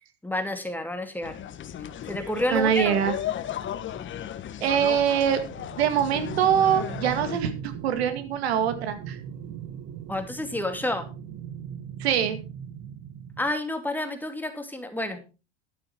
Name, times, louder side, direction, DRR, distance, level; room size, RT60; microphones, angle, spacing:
voice 1, 0.2-1.4 2.1-3.0 10.1-11.1 13.4-15.2, left 1 dB, 5° left, 6 dB, 2.5 m, -29 dB
sound 1, 1.2-7.4, left 10 dB, 40° left, 1.3 m, -35 dB
voice 2, 2.5-3.1 4.6-5.4 5.8-9.2 12.0-12.4, right 9 dB, 80° right, 9 dB, 2.0 m, -23 dB
sound 2, 5.5-13.5, right 9 dB, 55° right, 1.6 m, -39 dB
11.5 x 9.2 x 4.5 m, 0.32 s
hypercardioid pair, 85°, 31 cm